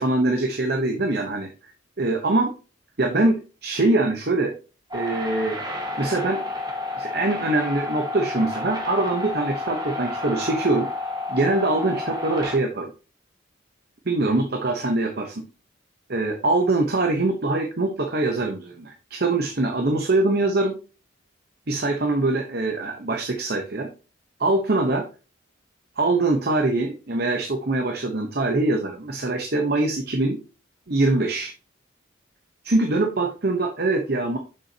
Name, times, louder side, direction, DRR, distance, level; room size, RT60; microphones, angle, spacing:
voice 1, 0.0-1.5 2.0-2.5 3.0-4.5 4.9-5.6 6.0-6.4 7.0-10.9 11.3-12.9 14.1-15.4 16.1-20.8 21.7-23.9 24.4-25.1 26.0-30.4 30.9-31.5 32.6-34.4, right 2 dB, 50° right, 4 dB, 0.9 m, -23 dB
sound 1, 4.9-12.6, left 3 dB, 20° right, 1.4 m, -30 dB
6.9 x 6.4 x 2.8 m, 0.32 s
head